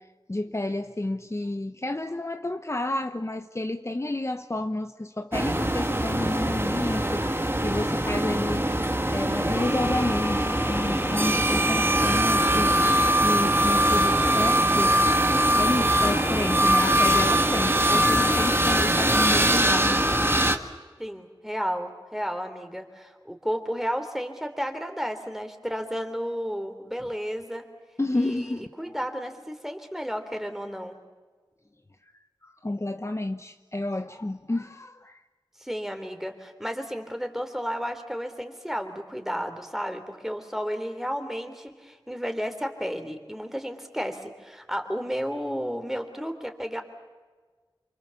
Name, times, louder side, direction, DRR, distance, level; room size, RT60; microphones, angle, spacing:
voice 1, 0.0-15.1 15.6-20.1 28.0-29.0 32.4-35.2, left 2 dB, 35° left, 0.9 m, -30 dB
sound 1, 5.3-20.6, right 1 dB, 25° right, 1.7 m, -22 dB
voice 2, 21.0-27.6 28.1-30.9 35.6-46.8, equal, 5° right, 3.3 m, -32 dB
28.0 x 25.0 x 7.1 m
wide cardioid pair, 60°, 9 cm